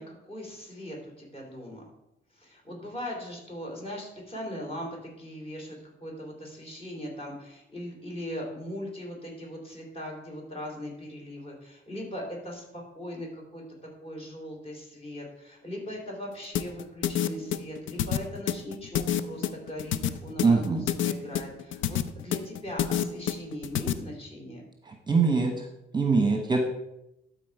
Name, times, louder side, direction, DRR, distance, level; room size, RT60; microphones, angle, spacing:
voice 1, 0.0-1.8 2.4-13.6 14.0-24.7, equal, 30° left, -1 dB, 3.4 m, -39 dB
sound 1, 16.6-23.9, left 11 dB, 75° left, 0.5 m, -28 dB
voice 2, 20.4-20.9 24.9-25.7 25.9-26.6, right 4 dB, 20° right, 4 dB, 1.0 m, -23 dB
12.5 x 4.2 x 4.7 m, 0.86 s
cardioid pair, 90°, 20 cm